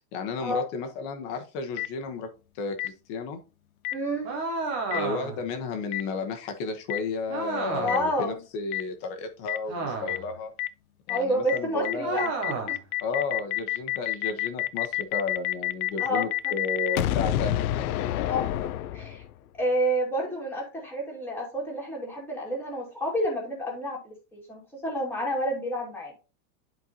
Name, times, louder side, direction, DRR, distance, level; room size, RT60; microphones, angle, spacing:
voice 1, 0.1-2.3 2.5-3.4 4.9-10.5 11.1-12.3 13.0-18.1, left 4 dB, 35° left, 5 dB, 1.1 m, -33 dB
Boom, 1.8-1.9 2.8-2.9 3.8-3.9 4.9-5.0 5.9-6.0 6.9-7.0 7.9-8.0 8.7-8.8 9.5-9.6 10.1-10.2 10.6-10.7 11.1-11.2 11.5-11.6 11.8-19.4, left 14 dB, 60° left, 0.6 m, -28 dB
voice 2, 3.9-4.3 7.8-8.3 11.1-12.2 16.0-16.3 18.2-18.4 18.9-19.2 19.6-26.1, equal, 5° left, -2 dB, 2.4 m, -29 dB
sound 1, 4.2-5.5 7.3-8.1 9.7-10.3 12.0-12.8, right 3 dB, 15° right, 0.3 m, -31 dB
11.0 x 4.6 x 2.8 m, 0.31 s
supercardioid pair, 170°, 49 cm